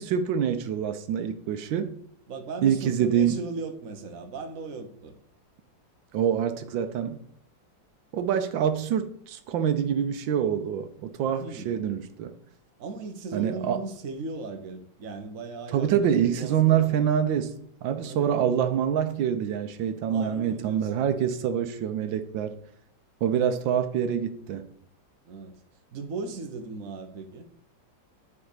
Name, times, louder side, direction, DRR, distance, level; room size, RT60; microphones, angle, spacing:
voice 1, 0.0-1.9 2.6-3.4 6.1-7.2 8.1-12.3 13.3-13.8 15.7-17.5 17.8-22.6 23.2-24.7, right 9 dB, 85° right, 1.4 m, -26 dB
voice 2, 2.3-5.1 11.4-11.8 12.8-17.1 18.0-18.4 20.1-20.9 25.2-25.5 25.9-27.5, right 3 dB, 50° right, 1.3 m, -37 dB
9.3 x 4.3 x 6.6 m
omnidirectional pair, 2.0 m